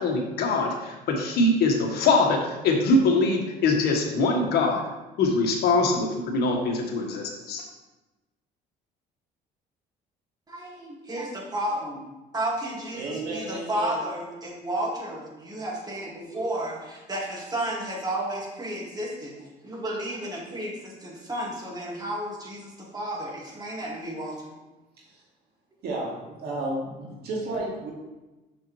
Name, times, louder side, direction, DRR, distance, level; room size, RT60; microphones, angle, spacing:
voice 1, 0.0-4.8 5.2-7.6, left 3 dB, 70° left, 1 dB, 1.3 m, -23 dB
voice 2, 10.5-12.0 12.3-24.5, right 1 dB, 25° right, -2 dB, 1.9 m, -32 dB
voice 3, 12.9-14.0 25.8-27.9, right 2 dB, 70° right, -3 dB, 2.1 m, -32 dB
6.3 x 5.8 x 3.1 m, 1.1 s
cardioid pair, 110°, 17 cm